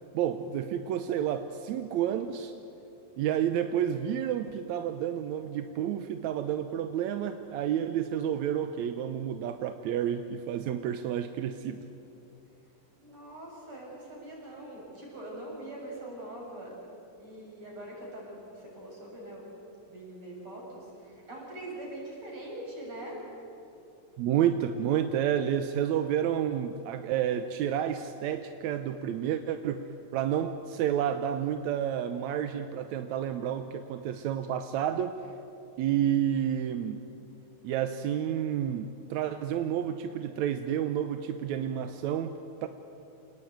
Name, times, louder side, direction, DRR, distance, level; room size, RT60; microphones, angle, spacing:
voice 1, 0.1-2.5 3.2-11.9 24.2-35.2 35.8-37.0 37.6-42.7, right 9 dB, 70° right, 8 dB, 1.9 m, -30 dB
voice 2, 13.0-16.7 17.2-19.4 19.9-23.2, right 1 dB, 40° right, -3 dB, 8.0 m, -43 dB
28.0 x 19.5 x 9.4 m, 2.8 s
omnidirectional pair, 3.9 m